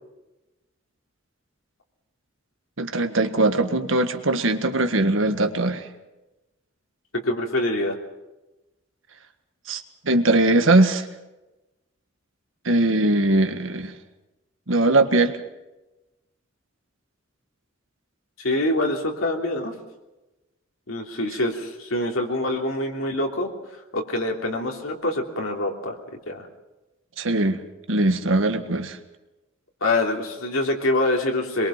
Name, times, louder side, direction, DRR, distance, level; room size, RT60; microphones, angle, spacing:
voice 1, 2.8-5.9 9.7-11.1 12.6-14.0 14.7-15.4 27.2-27.6 27.9-29.0, right 2 dB, 75° right, 7 dB, 1.7 m, -21 dB
voice 2, 7.1-8.0 18.4-19.7 20.9-23.5 23.9-25.9 26.3-26.5 29.8-31.7, left 1 dB, 85° left, 1 dB, 3.2 m, -25 dB
23.0 x 22.5 x 5.9 m, 1.0 s
head